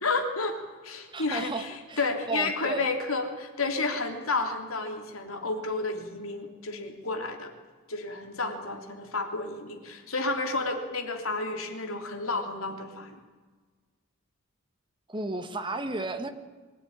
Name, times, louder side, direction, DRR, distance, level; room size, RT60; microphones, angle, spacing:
voice 1, 0.0-7.5 7.9-13.2, left 3 dB, 85° left, 5 dB, 3.1 m, -31 dB
voice 2, 1.1-2.9 15.1-16.3, right 3 dB, 25° right, 7 dB, 1.6 m, -33 dB
23.5 x 16.0 x 9.9 m, 1.4 s
head